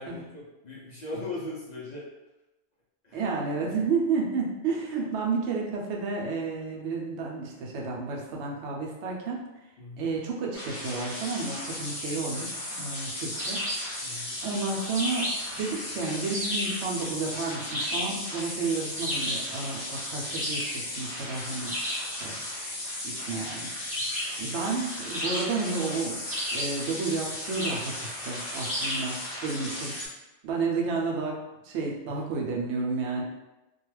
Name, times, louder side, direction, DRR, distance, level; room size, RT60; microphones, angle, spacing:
voice 1, 0.0-2.0 3.0-3.2 4.8-5.0 9.8-10.1 14.0-14.4 24.0-24.5 32.1-32.2, left 2 dB, 50° left, -6 dB, 0.5 m, -40 dB
voice 2, 3.1-9.4 10.0-13.6 14.1-15.3 15.6-21.8 22.1-22.3 23.0-23.7 24.4-26.2 26.5-30.0 30.4-31.4 31.6-33.2, right 4 dB, 75° right, -2 dB, 0.9 m, -31 dB
sound 1, 10.5-30.1, left 1 dB, 80° left, 1.1 m, -36 dB
sound 2, 13.3-13.9 15.0-15.6 16.3-16.8 17.7-18.2 19.0-19.5 20.3-20.8 21.7-22.1 23.9-24.4 25.1-25.8 26.3-26.8 27.5-27.9 28.6-29.1, equal, 10° right, 0.4 m, -32 dB
2.3 x 2.2 x 3.1 m, 1.0 s
omnidirectional pair, 1.2 m